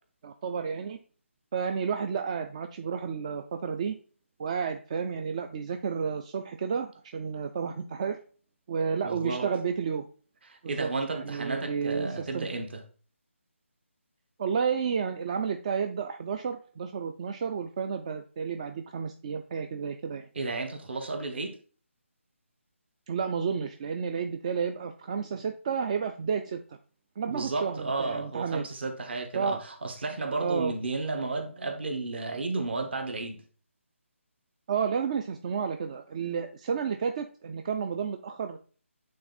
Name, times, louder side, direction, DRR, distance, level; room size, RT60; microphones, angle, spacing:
voice 1, 0.2-1.0 1.5-3.9 4.4-8.2 8.7-10.1 10.6-12.5 14.4-20.3 23.1-26.8 27.2-28.7 29.3-29.6 30.4-30.7 34.7-38.6, right 6 dB, 30° right, 0.4 m, -31 dB
voice 2, 9.0-9.5 10.4-12.8 20.3-21.6 27.3-33.4, right 3 dB, 50° right, 1.6 m, -33 dB
8.6 x 3.5 x 4.1 m
figure-of-eight pair, 155°, 7 cm